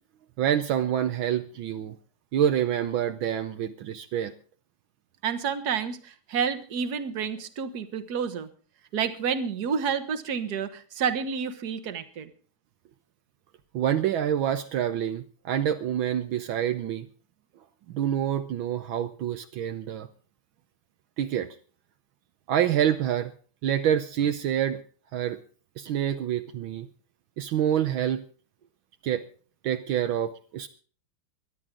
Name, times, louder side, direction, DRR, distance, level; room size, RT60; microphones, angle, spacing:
voice 1, 0.4-2.0 2.3-4.3 13.7-17.1 17.9-20.1 21.2-21.5 22.5-23.3 23.6-24.8 25.1-25.4 25.8-26.9 27.4-28.2 29.0-29.2 29.6-30.7, right 10 dB, 75° right, 8 dB, 1.6 m, -27 dB
voice 2, 5.2-8.5 8.9-12.3, right 7 dB, 55° right, 11 dB, 1.7 m, -29 dB
23.5 x 10.5 x 3.8 m, 0.40 s
omnidirectional pair, 2.2 m